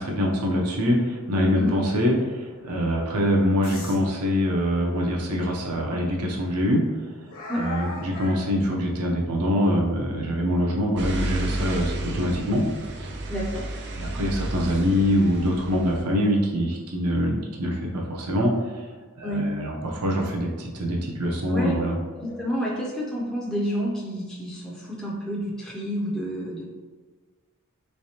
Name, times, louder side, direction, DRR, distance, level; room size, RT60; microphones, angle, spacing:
voice 1, 0.0-12.6 12.9-13.1 13.9-18.5 19.2-22.0, equal, 80° right, -1 dB, 0.7 m, -24 dB
sound 1, 3.6-4.0 5.1-5.2 5.7-5.8 7.3-8.4, left 2 dB, 65° left, 1.1 m, -36 dB
sound 2, 11.0-16.0, right 1 dB, 50° right, 0.5 m, -31 dB
voice 2, 13.3-13.7 19.2-19.5 21.5-21.8 22.2-26.6, equal, 5° left, -6 dB, 0.5 m, -29 dB
3.3 x 3.1 x 2.8 m, 1.4 s
head